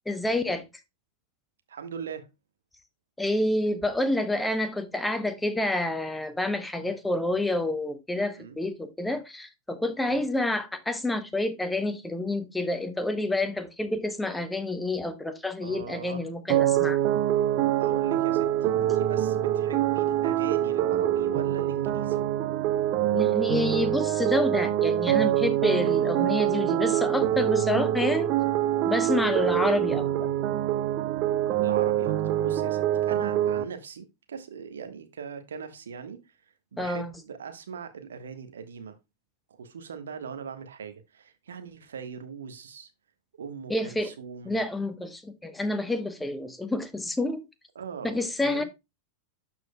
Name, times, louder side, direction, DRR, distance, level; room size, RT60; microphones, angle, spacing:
voice 1, 0.1-0.6 3.2-17.0 23.1-28.3 28.8-30.3 36.8-37.1 43.7-44.1 44.4-47.5 48.0-48.6, left 1 dB, 5° left, 0.9 m, -28 dB
voice 2, 1.7-2.3 8.4-8.6 10.0-10.2 15.6-16.2 17.8-18.5 18.8-22.2 29.2-29.4 31.6-36.2 36.7-39.0 39.6-42.9 43.4-44.6 47.7-48.6, right 6 dB, 65° right, 1.2 m, -40 dB
sound 1, 16.5-33.6, right 12 dB, 40° right, 0.7 m, -25 dB
12.5 x 4.6 x 2.2 m
figure-of-eight pair, 90°, 0 cm